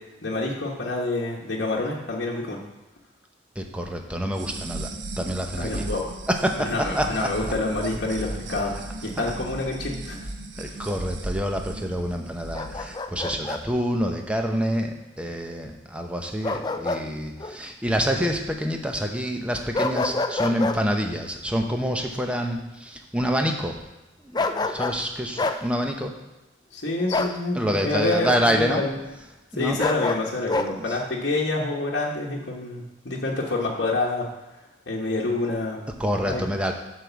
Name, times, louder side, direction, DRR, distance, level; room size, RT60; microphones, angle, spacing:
voice 1, 0.2-2.6 5.6-6.0 6.6-10.2 10.6-10.9 26.7-28.9 29.6-34.3 34.9-35.8 36.2-36.4, left 2 dB, 60° left, -4 dB, 1.2 m, -27 dB
voice 2, 3.6-4.9 5.2-5.9 6.3-7.3 10.6-23.8 24.2-26.1 27.5-28.8 29.5-29.8 30.7-31.0 36.0-36.7, equal, 5° right, 2 dB, 0.8 m, -27 dB
sound 1, 4.3-13.0, right 2 dB, 80° right, 0.9 m, -36 dB
Bark, 12.5-13.6 16.4-17.1 17.4-17.6 19.7-20.8 24.3-25.0 25.4-25.6 27.1-27.4 29.8-30.7, left 3 dB, 20° left, 0.4 m, -26 dB
7.6 x 4.9 x 7.0 m, 1.1 s
head